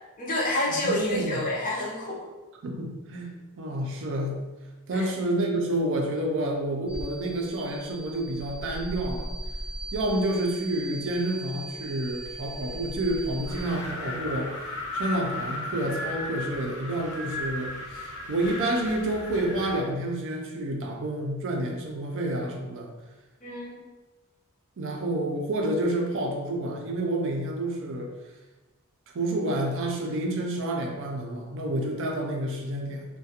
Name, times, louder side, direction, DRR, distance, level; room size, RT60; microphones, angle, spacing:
voice 1, 0.2-2.3 4.9-5.1 23.4-23.8, left 1 dB, 35° left, -4 dB, 0.6 m, -28 dB
voice 2, 0.7-1.4 2.6-4.4 4.9-9.3 9.9-14.5 14.9-22.9 24.8-28.1 29.1-33.1, right 1 dB, 60° right, 1 dB, 0.4 m, -29 dB
sound 1, 6.9-13.6, right 1 dB, 20° right, 0.8 m, -38 dB
Wind, 13.4-19.9, left 2 dB, 80° left, 0.8 m, -35 dB
2.3 x 2.2 x 2.7 m, 1.1 s
head